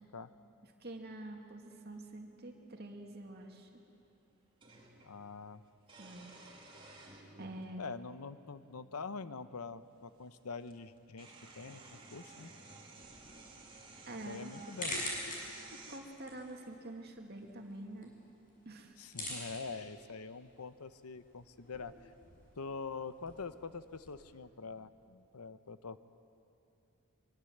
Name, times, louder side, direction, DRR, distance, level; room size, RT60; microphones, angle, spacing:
voice 1, 0.8-3.7 6.0-6.3 7.4-7.8 14.1-14.5 15.7-18.1 18.7-18.9, right 1 dB, 45° right, 2 dB, 2.4 m, -46 dB
sound 1, 2.9-3.0 4.6-5.1 5.8-7.7 8.6-8.7 10.2-10.3 10.6-16.0, right 3 dB, 25° right, 2.8 m, -54 dB
voice 2, 5.0-5.6 7.8-11.3 11.6-11.8 12.1-12.5 14.3-15.0 19.0-21.9 22.6-26.0, left 4 dB, 85° left, 13 dB, 0.8 m, -44 dB
sound 2, 13.0-24.2, left 1 dB, 35° left, 6.6 m, -47 dB
23.5 x 23.0 x 8.0 m, 2.7 s
head